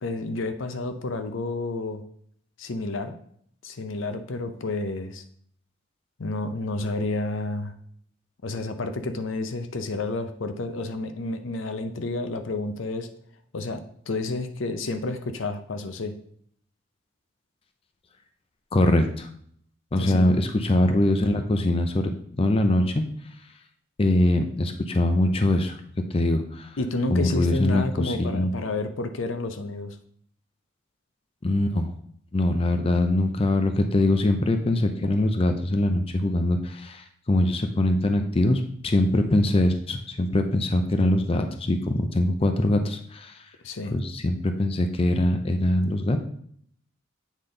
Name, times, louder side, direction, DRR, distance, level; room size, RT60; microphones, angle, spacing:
voice 1, 0.0-2.0 2.6-3.2 3.6-5.2 6.2-7.7 8.4-13.1 13.5-13.8 14.1-16.1 20.0-20.2 26.8-30.0 43.6-44.0, left 2 dB, 85° left, 9 dB, 0.6 m, -30 dB
voice 2, 18.7-19.3 19.9-22.1 22.4-23.0 24.0-25.8 26.1-26.7 27.1-28.5 31.4-31.9 32.3-43.3 43.9-46.2, left 1 dB, 30° left, 7 dB, 0.5 m, -23 dB
8.2 x 3.9 x 3.8 m, 0.63 s
head